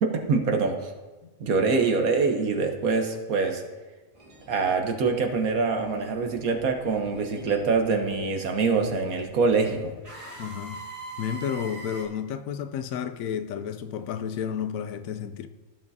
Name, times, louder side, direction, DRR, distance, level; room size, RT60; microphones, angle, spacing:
voice 1, 0.0-0.9 1.4-3.6 4.5-9.9, right 4 dB, 80° right, 1.5 m, -24 dB
sound 1, 4.1-12.0, right 2 dB, 20° right, 1.8 m, -45 dB
voice 2, 10.4-10.8 11.2-15.5, left 8 dB, 75° left, 1.0 m, -31 dB
16.0 x 7.3 x 2.7 m
omnidirectional pair, 1.5 m